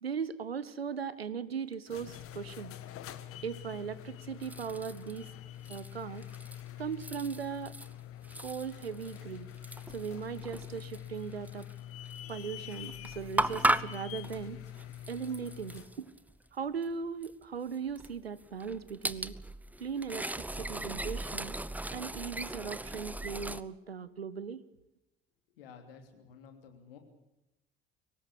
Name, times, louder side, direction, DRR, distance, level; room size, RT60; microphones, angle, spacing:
voice 1, 0.0-2.7 3.4-5.3 5.7-6.2 6.8-7.7 8.4-9.5 9.9-11.7 12.3-14.6 15.1-16.1 16.5-19.3 19.8-20.3 20.6-21.6 21.9-24.6, right 6 dB, 85° right, 17 dB, 0.9 m, -38 dB
sound 1, 1.7-16.0, left 12 dB, 50° left, 1.6 m, -46 dB
sound 2, 4.4-5.3 5.7-6.7 6.9-7.9 8.2-11.7 12.1-12.3 12.7-16.4 16.8-16.9 17.2-17.3 17.9-23.6, right 1 dB, 5° right, 0.8 m, -37 dB
voice 2, 25.6-27.0, left 6 dB, 70° left, 6 dB, 3.0 m, -52 dB
23.5 x 19.0 x 8.4 m, 0.91 s
figure-of-eight pair, 55°, 30 cm